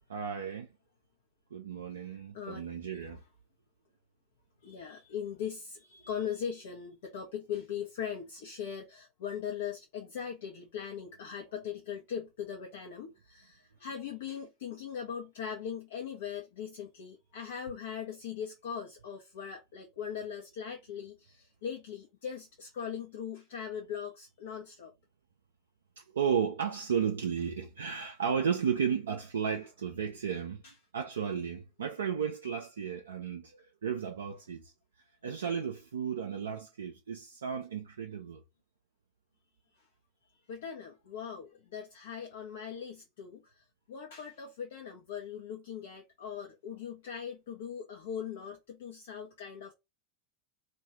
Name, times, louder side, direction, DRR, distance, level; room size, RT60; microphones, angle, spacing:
voice 1, 0.1-0.7 1.5-3.2 26.0-30.6 30.9-34.7 35.2-38.4, right 7 dB, 70° right, 0.3 m, -34 dB
voice 2, 4.6-24.9 30.6-30.7 40.5-49.7, left 8 dB, 60° left, 0.5 m, -40 dB
2.3 x 2.2 x 2.9 m
figure-of-eight pair, 80°, 0 cm